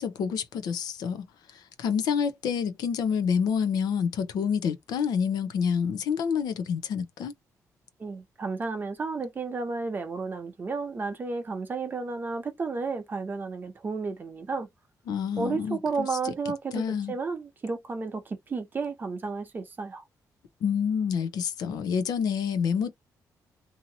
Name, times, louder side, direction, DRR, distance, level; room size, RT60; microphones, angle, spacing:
voice 1, 0.0-7.3 15.1-16.3 16.7-17.1 20.6-22.9, left 7 dB, 85° left, 0.7 m, -28 dB
voice 2, 8.0-14.7 15.4-20.0, right 4 dB, 30° right, 0.7 m, -32 dB
2.8 x 2.8 x 2.7 m
cardioid pair, 145°, 7 cm